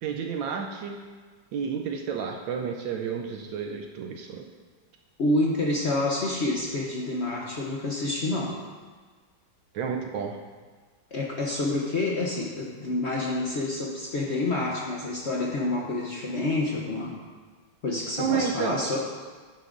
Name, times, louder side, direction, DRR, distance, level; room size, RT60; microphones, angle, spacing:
voice 1, 0.0-1.0 1.5-4.5 9.7-10.4 18.2-18.8, right 7 dB, 75° right, 3 dB, 1.2 m, -31 dB
voice 2, 5.2-8.6 11.1-17.2 17.8-19.0, left 2 dB, 65° left, -2 dB, 0.6 m, -28 dB
10.0 x 9.9 x 2.6 m, 1.5 s
omnidirectional pair, 2.4 m